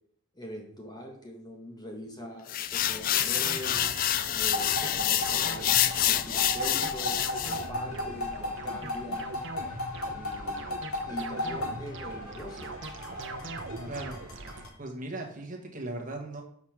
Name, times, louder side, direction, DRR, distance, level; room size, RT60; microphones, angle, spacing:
voice 1, 0.3-3.8 4.3-5.7 6.0-9.3 10.1-10.8 11.1-12.7, equal, 20° left, 1 dB, 1.2 m, -43 dB
sound 1, 2.5-7.6, left 11 dB, 40° left, 0.3 m, -27 dB
sound 2, 3.2-14.6, right 3 dB, 55° right, 0.8 m, -42 dB
sound 3, 4.5-14.7, left 1 dB, 85° left, 2.3 m, -36 dB
voice 2, 13.9-14.4 14.8-16.4, right 2 dB, 35° right, 1 dB, 1.4 m, -38 dB
6.7 x 4.8 x 5.9 m, 0.65 s
head